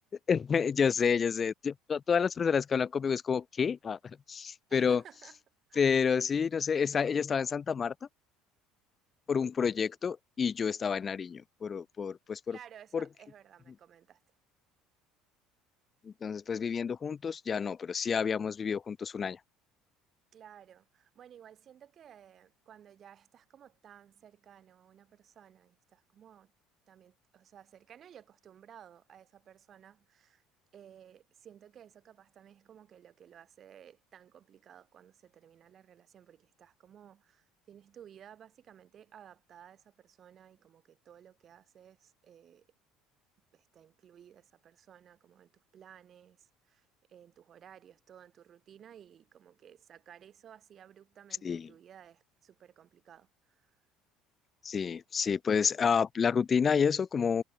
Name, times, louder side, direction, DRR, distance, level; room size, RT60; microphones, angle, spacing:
voice 1, 0.3-5.0 5.8-7.9 9.3-12.6 12.9-13.0 16.0-19.4 51.4-51.7 54.6-57.4, left 6 dB, 35° left, 1.4 m, -29 dB
voice 2, 4.7-5.4 5.7-5.9 12.5-14.2 20.3-26.5 26.9-30.4 30.7-42.7 43.5-53.8, right 9 dB, 50° right, 7.8 m, -56 dB
hypercardioid pair, 75°, 0 cm